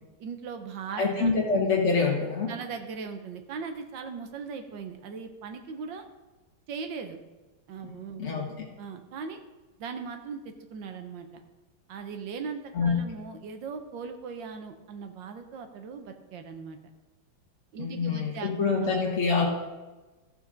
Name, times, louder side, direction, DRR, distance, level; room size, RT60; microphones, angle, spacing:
voice 1, 0.2-1.3 2.5-6.0 6.7-7.2 7.7-8.3 8.8-9.4 9.8-11.4 11.9-16.8 17.7-18.9, right 5 dB, 75° right, 6 dB, 1.5 m, -39 dB
voice 2, 1.0-2.5 7.8-7.9 8.2-8.5 12.7-13.2 17.8-19.5, left 4 dB, 45° left, -3 dB, 1.4 m, -26 dB
14.5 x 6.9 x 3.8 m, 1.2 s
omnidirectional pair, 2.1 m